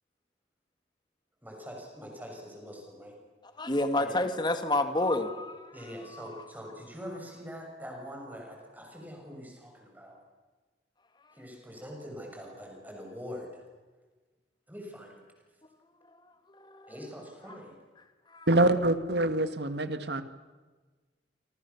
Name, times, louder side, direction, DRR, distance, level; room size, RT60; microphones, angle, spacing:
voice 1, 1.4-3.2 4.0-4.2 5.7-10.2 11.3-13.6 14.7-15.2 16.9-17.8, equal, 10° right, 1 dB, 6.6 m, -44 dB
voice 2, 3.6-5.7 6.1-6.3 16.5-16.9 18.3-18.5, left 2 dB, 25° left, 8 dB, 1.9 m, -29 dB
voice 3, 18.5-20.2, right 1 dB, 70° right, 10 dB, 1.7 m, -25 dB
28.5 x 26.5 x 7.1 m, 1.3 s
head